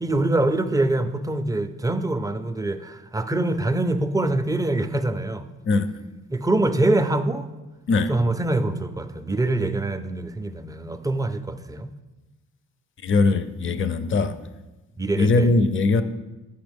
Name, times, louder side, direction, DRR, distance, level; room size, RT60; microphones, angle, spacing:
voice 1, 0.0-5.5 6.3-7.5 8.1-11.9 15.0-15.5, right 2 dB, 10° right, 9 dB, 0.3 m, -24 dB
voice 2, 13.0-14.4 15.2-16.0, left 3 dB, 40° left, 12 dB, 0.5 m, -20 dB
8.0 x 5.7 x 3.5 m, 1.1 s
cardioid pair, 90°, 30 cm